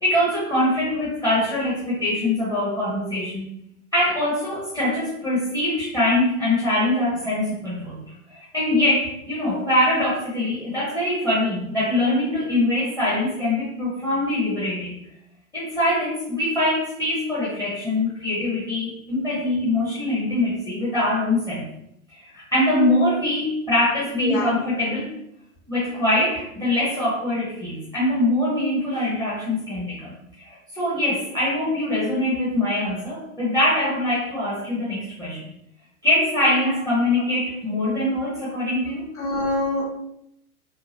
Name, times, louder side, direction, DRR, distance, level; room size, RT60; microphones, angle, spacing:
voice 1, 0.0-3.5 3.9-8.0 8.3-15.0 15.5-21.7 22.3-25.1 25.7-30.1 30.4-35.4 36.0-39.0, left 1 dB, 10° left, -8 dB, 0.9 m, -23 dB
voice 2, 24.2-24.5 36.7-36.8 39.2-39.9, left 2 dB, 70° left, -4 dB, 1.4 m, -25 dB
3.8 x 2.2 x 2.7 m, 0.77 s
figure-of-eight pair, 95°, 44 cm